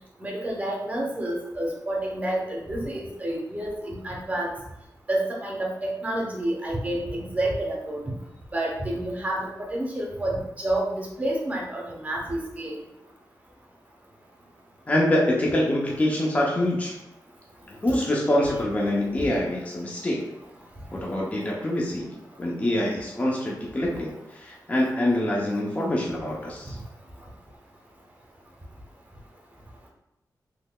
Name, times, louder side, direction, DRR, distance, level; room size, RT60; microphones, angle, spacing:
voice 1, 0.2-4.5 5.1-8.0 8.5-12.8, right 1 dB, 20° right, -2 dB, 0.8 m, -29 dB
voice 2, 14.9-17.0 17.8-20.2 20.9-22.1 22.4-26.8, left 1 dB, 20° left, -3 dB, 0.5 m, -25 dB
3.7 x 3.1 x 2.2 m, 0.92 s
wide cardioid pair, 135°, 7 cm